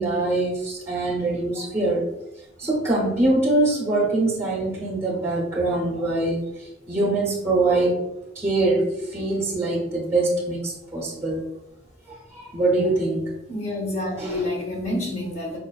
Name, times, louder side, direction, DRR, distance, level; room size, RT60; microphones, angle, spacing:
voice 1, 0.0-2.1 2.6-8.0 8.3-11.4 12.1-13.2 14.2-14.5, right 2 dB, 15° right, -5 dB, 0.7 m, -23 dB
voice 2, 13.5-15.6, left 1 dB, 35° left, -2 dB, 1.0 m, -28 dB
4.6 x 2.5 x 2.3 m, 0.90 s
head